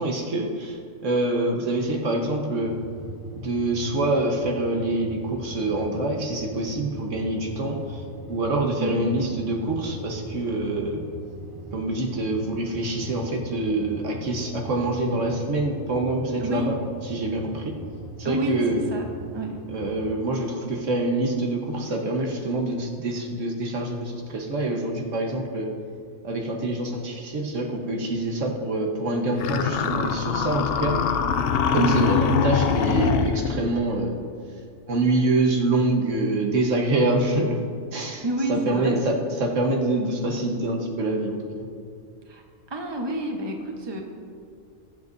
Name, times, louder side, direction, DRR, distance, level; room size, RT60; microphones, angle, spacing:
voice 1, 0.0-2.7 3.4-8.0 8.3-11.0 11.7-16.7 17.0-17.7 18.2-18.8 19.7-25.7 26.2-31.0 31.7-34.2 34.9-37.6 37.9-41.7, right 2 dB, 75° right, 1 dB, 1.5 m, -26 dB
sound 1, 2.6-20.1, right 1 dB, 40° right, 1.9 m, -40 dB
voice 2, 8.8-9.1 16.4-16.7 18.2-19.0 19.3-19.5 31.8-32.1 38.2-39.0 42.3-42.4 42.7-44.0, right 1 dB, 20° right, 1 dB, 1.1 m, -28 dB
sound 2, 29.4-33.7, left 7 dB, 60° left, 0.7 m, -23 dB
20.5 x 8.0 x 2.6 m, 2.3 s
omnidirectional pair, 1.3 m